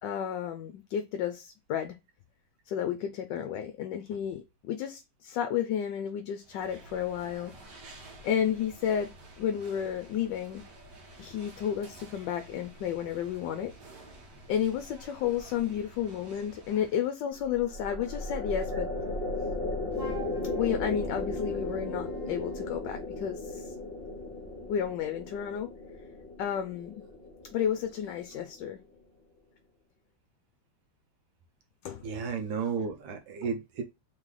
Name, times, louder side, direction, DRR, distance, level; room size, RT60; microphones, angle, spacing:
voice 1, 0.0-1.9 2.7-7.5 8.2-10.6 11.2-13.7 14.5-18.9 20.6-23.7 24.7-25.7 26.4-27.0 27.5-28.8 31.8-32.0, left 9 dB, 75° left, 1.1 m, -32 dB
sound 1, 6.4-17.2, right 1 dB, 60° right, 1.7 m, -51 dB
sound 2, 17.4-28.8, left 2 dB, 35° left, 1.1 m, -36 dB
Wind instrument woodwind instrument, 19.9-22.8, right 7 dB, 30° right, 1.5 m, -47 dB
voice 2, 32.0-33.8, right 5 dB, 80° right, 1.6 m, -33 dB
3.8 x 3.2 x 3.7 m
omnidirectional pair, 2.1 m